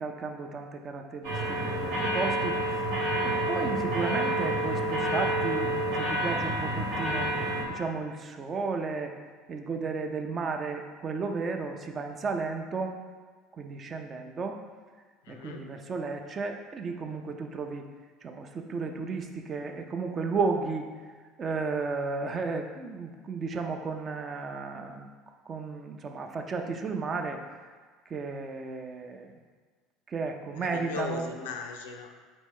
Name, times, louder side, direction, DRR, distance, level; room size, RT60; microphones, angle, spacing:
voice 1, 0.0-2.9 3.2-7.3 7.7-9.1 9.5-13.0 13.6-14.6 15.3-17.9 18.2-20.9 21.4-25.1 25.5-27.4 28.1-29.3 30.1-31.3, right 4 dB, 35° right, 4 dB, 0.4 m, -33 dB
sound 1, 1.2-7.6, right 1 dB, 65° right, 1.1 m, -29 dB
voice 2, 15.3-15.7 30.6-32.1, left 5 dB, 70° left, 4 dB, 0.4 m, -38 dB
4.2 x 3.0 x 3.6 m, 1.5 s
hypercardioid pair, 70°, 0 cm